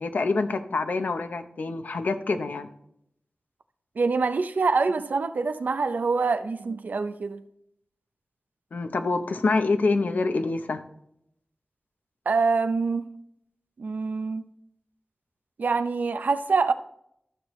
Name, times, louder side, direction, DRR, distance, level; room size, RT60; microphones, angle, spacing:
voice 1, 0.0-2.7 8.7-10.8, left 3 dB, 85° left, 0.7 m, -26 dB
voice 2, 4.0-7.4 12.3-13.1 13.8-14.5 15.6-16.7, right 4 dB, 90° right, 0.5 m, -25 dB
13.5 x 6.5 x 3.1 m
wide cardioid pair, 90°, 3 cm